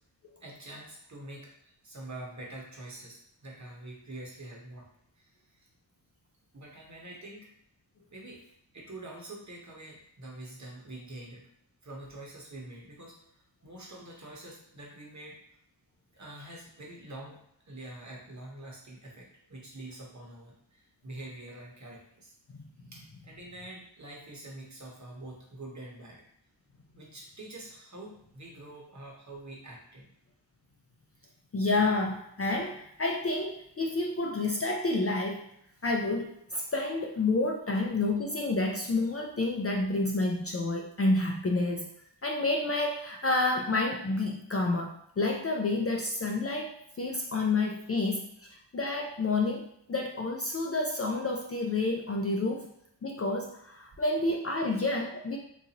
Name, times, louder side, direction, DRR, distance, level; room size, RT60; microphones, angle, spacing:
voice 1, 0.4-1.5 1.8-4.9 5.2-5.7 6.5-7.5 8.1-8.4 8.7-11.5 11.8-15.4 16.1-17.4 17.7-22.3 22.9-26.2 27.0-30.1, right 1 dB, 40° right, -2 dB, 1.0 m, -46 dB
voice 2, 31.5-35.4 35.8-41.9 42.2-52.7 53.0-55.4, left 2 dB, 35° left, 1 dB, 0.4 m, -29 dB
3.9 x 2.6 x 2.8 m, 0.73 s
wide cardioid pair, 90°, 44 cm